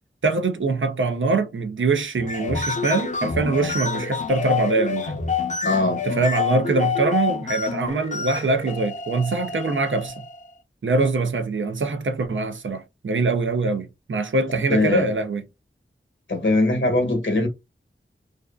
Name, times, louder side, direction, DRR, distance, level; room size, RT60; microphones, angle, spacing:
voice 1, 0.2-5.2 6.0-10.1 10.8-15.4, right 3 dB, 65° right, 0.5 m, -23 dB
sound 1, 2.2-10.4, left 5 dB, 35° left, 0.5 m, -28 dB
voice 2, 5.6-6.0 14.7-15.1 16.3-17.5, left 2 dB, 65° left, 0.9 m, -21 dB
2.5 x 2.3 x 2.3 m
wide cardioid pair, 40°, 21 cm